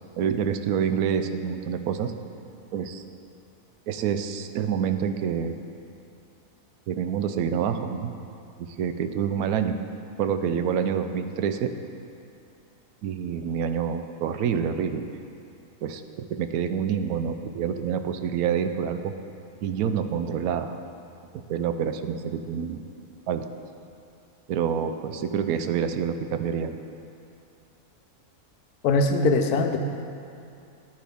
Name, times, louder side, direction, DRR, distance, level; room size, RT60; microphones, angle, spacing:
voice 1, 0.2-2.1 2.7-3.0 3.9-5.6 6.9-8.1 8.8-9.8 10.2-11.7 13.0-15.1 15.8-19.1 19.6-20.8 21.3-22.8 23.3-23.5 24.5-26.7, right 7 dB, 75° right, 8 dB, 1.0 m, -27 dB
voice 2, 28.8-29.8, left 3 dB, 85° left, 5 dB, 1.2 m, -21 dB
10.0 x 10.0 x 3.5 m, 2.6 s
omnidirectional pair, 1.6 m